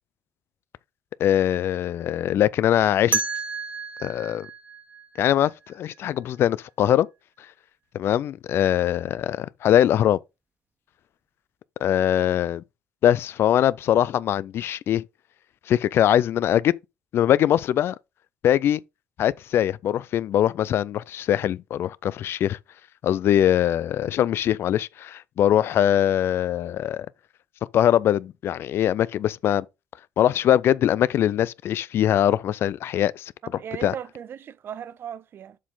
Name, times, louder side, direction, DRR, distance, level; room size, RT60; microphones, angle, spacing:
voice 1, 1.2-3.2 4.0-4.5 5.2-7.1 7.9-10.2 11.8-12.6 13.0-15.0 15.7-16.7 17.1-17.9 18.4-18.8 19.2-22.6 23.0-27.1 27.7-29.6 30.2-33.3 33.8-33.9, left 11 dB, 60° left, 0.4 m, -22 dB
sound 1, 3.1-6.0, right 4 dB, 35° right, 1.5 m, -31 dB
voice 2, 33.5-35.6, right 9 dB, 55° right, 0.6 m, -37 dB
7.3 x 4.2 x 3.8 m
supercardioid pair, 70°, 5 cm